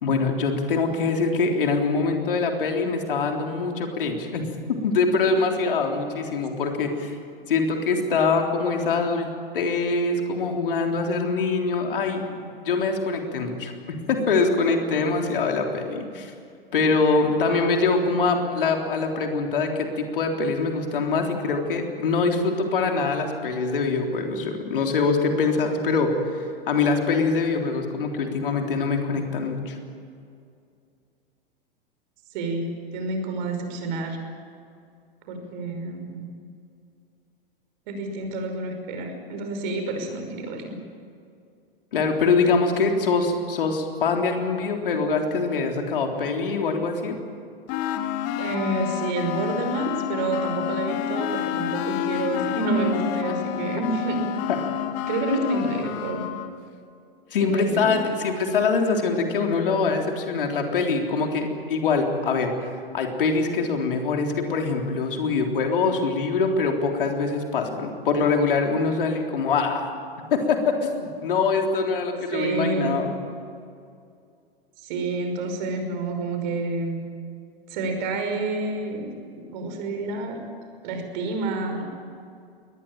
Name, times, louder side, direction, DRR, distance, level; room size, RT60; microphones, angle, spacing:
voice 1, 0.0-4.5 4.8-7.2 7.5-9.3 9.5-16.3 16.7-29.8 41.9-47.2 57.3-69.9 70.3-73.2, left 4 dB, 65° left, 3 dB, 3.6 m, -24 dB
voice 2, 32.3-34.2 35.3-36.3 37.9-40.8 48.4-54.2 55.1-56.2 57.4-57.9 72.3-73.0 74.8-77.0 77.7-79.1 79.3-80.4 80.8-81.8, right 3 dB, 50° right, 5 dB, 5.6 m, -28 dB
sound 1, 47.7-56.5, left 11 dB, 45° left, 1.7 m, -29 dB
22.0 x 19.5 x 8.9 m, 2.4 s
figure-of-eight pair, 95°, 29 cm